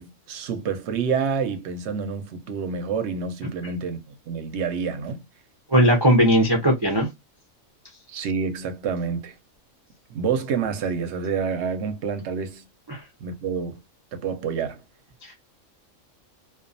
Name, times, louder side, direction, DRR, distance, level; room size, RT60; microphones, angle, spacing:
voice 1, 0.0-5.2 8.1-9.4 10.1-12.6 13.2-13.8 14.1-14.8, right 6 dB, 65° right, 0.8 m, -28 dB
voice 2, 5.7-7.1 12.9-13.0 15.2-15.3, equal, 40° right, 0.3 m, -18 dB
2.3 x 2.3 x 2.5 m
omnidirectional pair, 1.4 m